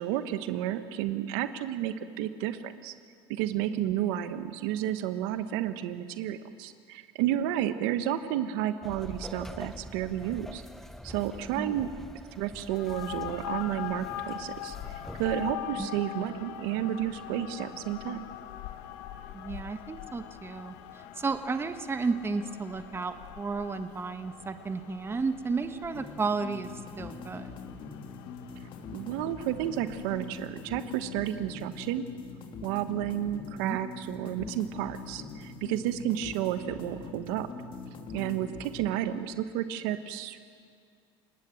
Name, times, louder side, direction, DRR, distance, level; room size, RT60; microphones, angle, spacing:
voice 1, 0.0-2.9 3.3-10.6 11.0-11.9 12.3-14.8 15.2-18.2 28.9-32.0 32.6-37.5 38.1-40.4, right 12 dB, 80° right, 10 dB, 1.2 m, -31 dB
sound 1, 8.8-15.5, left 1 dB, 5° left, 0.7 m, -45 dB
sound 2, 12.7-30.6, left 11 dB, 80° left, 1.3 m, -43 dB
voice 2, 19.3-26.7 27.0-27.5 33.6-33.8, right 4 dB, 20° right, 9 dB, 1.3 m, -33 dB
sound 3, 26.0-38.9, left 4 dB, 50° left, 2.9 m, -43 dB
28.5 x 18.5 x 7.8 m, 2.1 s
supercardioid pair, 100°, 12 cm